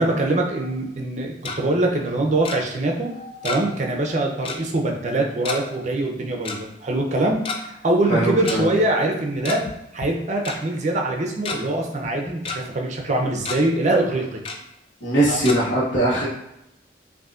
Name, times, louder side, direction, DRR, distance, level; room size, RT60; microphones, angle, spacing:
voice 1, 0.0-9.6 9.9-14.4 15.3-15.5, right 2 dB, 40° right, 1 dB, 0.6 m, -23 dB
Tick-tock, 1.1-1.6 2.5-2.6 3.5-4.1 4.5-4.6 5.5-5.6 6.5-6.6 7.3-7.6 8.5-8.6 9.3-9.7 10.0-10.1 10.5-10.6 11.1-11.6 12.0-12.6 13.0-13.1 13.4-13.6 14.5-14.6 15.5-15.6, left 4 dB, 30° left, 0.4 m, -30 dB
voice 2, 8.1-8.7 15.0-16.3, right 1 dB, 85° left, -7 dB, 1.1 m, -21 dB
5.2 x 2.6 x 2.4 m, 0.85 s
head